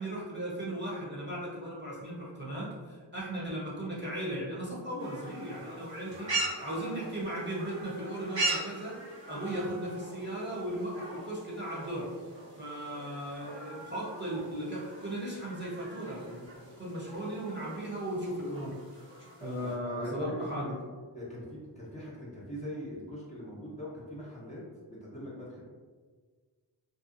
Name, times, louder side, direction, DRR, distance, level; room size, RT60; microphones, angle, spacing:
voice 1, 0.0-6.3 6.6-9.0 9.3-12.1 12.6-16.5 16.8-18.7 19.4-20.6, right 1 dB, 25° right, -7 dB, 1.0 m, -36 dB
sound 1, 5.0-19.8, right 2 dB, 85° right, 1.4 m, -40 dB
voice 2, 19.4-20.8 21.1-24.6 24.9-25.6, left 1 dB, 15° left, -7 dB, 0.8 m, -42 dB
2.7 x 2.3 x 2.5 m, 1.5 s
cardioid pair, 45°, 44 cm